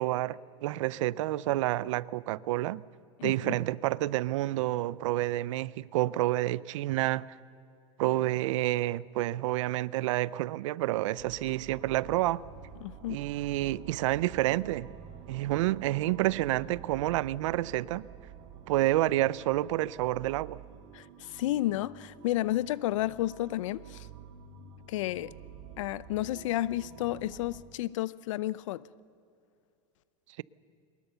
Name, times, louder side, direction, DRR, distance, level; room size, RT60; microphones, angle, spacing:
voice 1, 0.0-2.8 3.2-7.2 8.0-12.4 13.1-14.9 15.3-18.0 18.7-20.6, right 16 dB, 80° right, 0.5 m, -29 dB
voice 2, 3.2-3.6 12.8-13.2 20.9-24.1 24.9-25.3 25.8-28.8, left 15 dB, 85° left, 0.6 m, -32 dB
sound 1, 11.2-27.6, right 8 dB, 65° right, 2.1 m, -49 dB
22.5 x 20.5 x 6.9 m
supercardioid pair, 160°, 16 cm